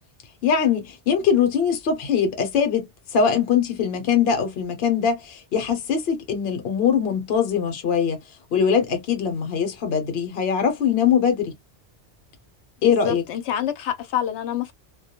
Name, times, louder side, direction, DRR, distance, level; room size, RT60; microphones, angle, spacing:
voice 1, 0.4-2.9 3.1-8.2 8.5-11.5 12.8-13.2, left 7 dB, 65° left, 0.9 m, -22 dB
voice 2, 13.0-14.7, left 10 dB, 90° left, 0.9 m, -27 dB
2.2 x 2.1 x 2.8 m
omnidirectional pair, 1.2 m